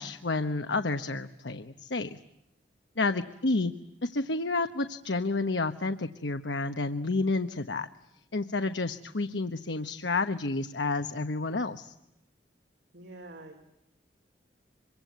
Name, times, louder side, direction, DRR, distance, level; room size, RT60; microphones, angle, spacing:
voice 1, 0.0-2.2 3.0-3.7 4.0-7.9 8.3-11.9, left 3 dB, 80° left, 8 dB, 1.1 m, -30 dB
voice 2, 3.2-3.7 12.9-13.6, right 2 dB, 75° right, 4 dB, 3.5 m, -48 dB
26.0 x 23.5 x 9.3 m, 0.86 s
head